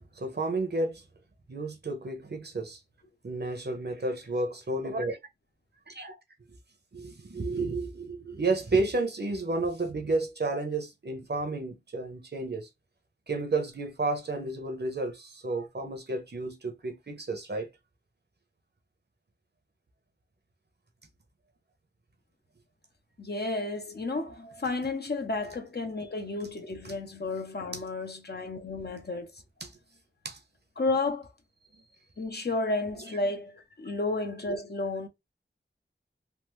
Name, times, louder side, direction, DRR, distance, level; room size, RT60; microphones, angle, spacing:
voice 1, 0.2-1.0 1.5-2.8 3.2-5.2 5.9-6.2 6.9-12.7 13.3-17.7 26.8-26.9 29.6-29.7 30.2-30.4, right 2 dB, 60° right, 0.8 m, -31 dB
voice 2, 23.2-29.3 30.8-31.3 32.2-35.1, left 2 dB, 55° left, 0.7 m, -32 dB
3.4 x 2.0 x 3.0 m
wide cardioid pair, 60°, 20 cm